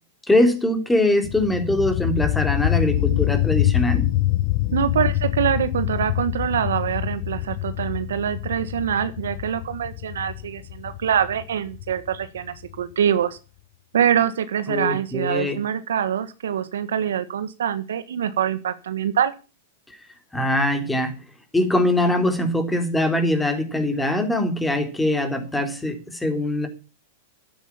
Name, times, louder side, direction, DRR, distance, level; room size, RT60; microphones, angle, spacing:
voice 1, 0.3-4.1 14.7-15.6 20.3-21.2 21.5-26.7, left 1 dB, 5° left, 3.4 m, -22 dB
sound 1, 1.2-12.8, left 16 dB, 50° left, 1.0 m, -25 dB
voice 2, 4.7-13.4 13.9-19.3, right 9 dB, 85° right, 1.6 m, -24 dB
12.5 x 9.1 x 7.2 m
hypercardioid pair, 130°, 0 cm